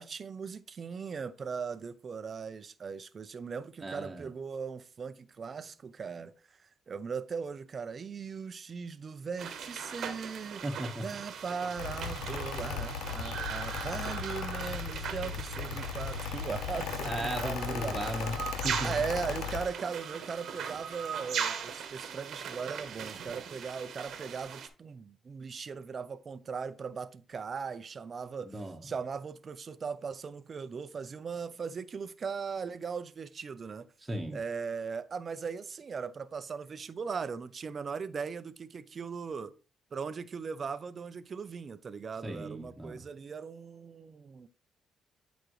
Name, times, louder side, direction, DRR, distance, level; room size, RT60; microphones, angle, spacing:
voice 1, 0.0-6.3 6.9-10.6 11.0-18.3 18.8-28.5 28.8-33.9 34.3-39.5 39.9-44.5, right 5 dB, 45° right, 0.6 m, -39 dB
voice 2, 3.8-4.3 10.6-11.0 17.0-18.9 28.4-28.8 34.0-34.4 42.2-43.0, right 1 dB, 20° right, 1.3 m, -36 dB
sound 1, 9.4-24.7, right 7 dB, 70° right, 1.2 m, -39 dB
Mechanical fan, 11.8-19.7, left 8 dB, 85° left, 0.7 m, -37 dB
8.9 x 5.1 x 3.2 m
cardioid pair, 90°, 0 cm